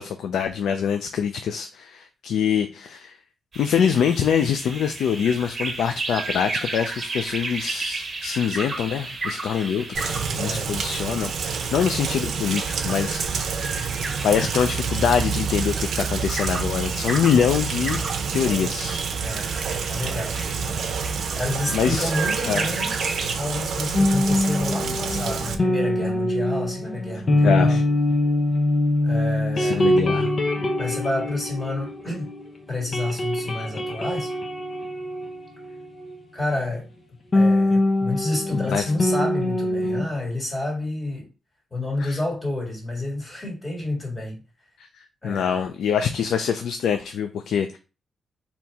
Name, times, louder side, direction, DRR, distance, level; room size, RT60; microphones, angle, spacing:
voice 1, 0.0-3.2 3.6-13.9 14.2-18.0 18.3-19.0 21.3-21.4 21.7-22.1 22.5-22.7 27.4-27.8 29.6-30.3 38.5-38.8 42.0-42.2 44.8-44.9 45.2-47.8, left 7 dB, 85° left, 8 dB, 0.4 m, -24 dB
sound 1, 3.5-23.3, right 3 dB, 30° right, 1.2 m, -34 dB
Rain, 9.9-25.5, right 6 dB, 70° right, 0.7 m, -28 dB
voice 2, 10.4-10.7 19.2-19.5 19.9-20.5 21.2-22.9 23.3-27.8 29.0-29.9 30.8-32.3 32.7-34.3 36.3-36.9 37.3-41.3 41.7-44.4 45.2-45.6, left 2 dB, 20° left, -1 dB, 1.9 m, -29 dB
sound 2, 23.9-32.4 32.7-36.2 37.3-40.0, left 1 dB, 35° left, 0.8 m, -23 dB
4.3 x 2.9 x 3.5 m, 0.32 s
cardioid pair, 130°, 0 cm